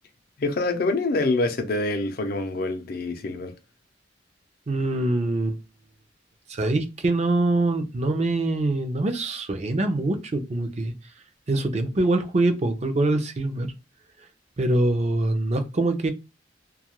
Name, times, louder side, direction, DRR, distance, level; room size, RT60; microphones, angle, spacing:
voice 1, 0.4-3.5, left 2 dB, 55° left, 0.5 m, -26 dB
voice 2, 4.7-5.6 6.5-10.9 11.5-13.7 14.6-16.1, right 2 dB, 40° right, 0.5 m, -24 dB
2.3 x 2.2 x 2.9 m
head